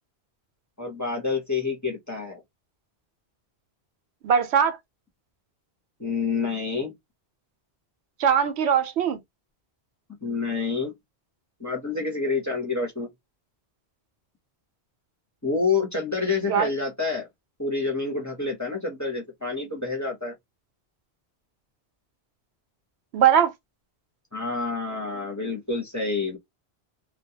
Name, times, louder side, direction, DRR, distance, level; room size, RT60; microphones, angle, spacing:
voice 1, 0.8-2.4 6.0-6.9 10.2-10.9 11.6-13.1 15.4-17.3 17.6-20.3 24.3-26.4, left 4 dB, 20° left, 0.6 m, -28 dB
voice 2, 4.2-4.8 8.2-9.2 16.5-16.7 23.1-23.5, right 8 dB, 85° right, 0.9 m, -20 dB
2.3 x 2.1 x 2.7 m
omnidirectional pair, 1.1 m